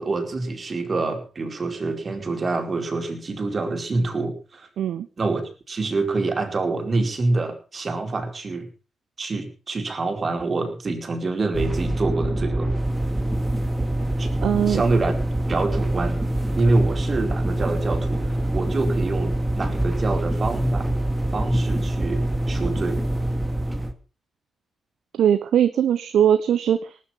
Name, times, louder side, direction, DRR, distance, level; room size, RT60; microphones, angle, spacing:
voice 1, 0.0-4.7 5.2-8.7 9.2-12.7 14.2-14.3 14.7-15.1 15.5-20.9 21.3-23.0, right 3 dB, 45° right, 5 dB, 4.7 m, -26 dB
voice 2, 4.8-5.1 14.4-14.8 25.1-27.0, right 9 dB, 70° right, 12 dB, 1.2 m, -20 dB
sound 1, 11.5-23.9, right 1 dB, 20° right, 2.7 m, -25 dB
19.0 x 10.0 x 5.9 m, 0.36 s
hypercardioid pair, 45°, 0 cm